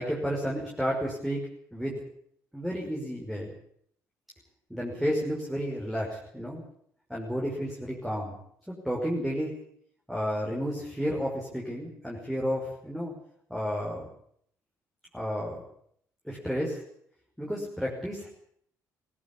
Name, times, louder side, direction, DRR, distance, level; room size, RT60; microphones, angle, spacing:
voice 1, 0.0-1.4 1.7-2.0 2.5-3.5 4.7-6.6 7.1-8.4 8.8-9.6 10.1-13.1 13.5-14.1 15.1-15.6 16.2-16.8 17.4-18.3, equal, ahead, -3 dB, 5.7 m, -31 dB
17.0 x 16.5 x 10.0 m, 0.68 s
supercardioid pair, 65°, 8 cm